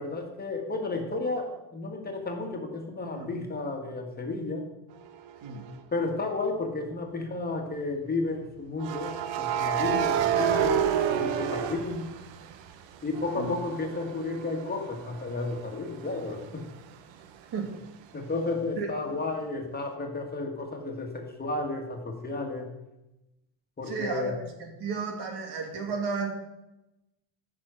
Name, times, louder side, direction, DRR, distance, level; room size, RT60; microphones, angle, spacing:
voice 1, 0.0-4.7 5.9-10.8 11.2-12.1 13.0-16.7 18.1-22.7 23.8-24.4, left 3 dB, 20° left, 3 dB, 1.8 m, -32 dB
sound 1, 5.5-5.7 8.8-12.7 13.1-16.7, right 8 dB, 90° right, 1.1 m, -29 dB
voice 2, 23.9-24.3 24.6-26.3, right 5 dB, 60° right, 3 dB, 2.6 m, -33 dB
14.5 x 6.2 x 6.2 m, 0.93 s
cardioid pair, 150°, 44 cm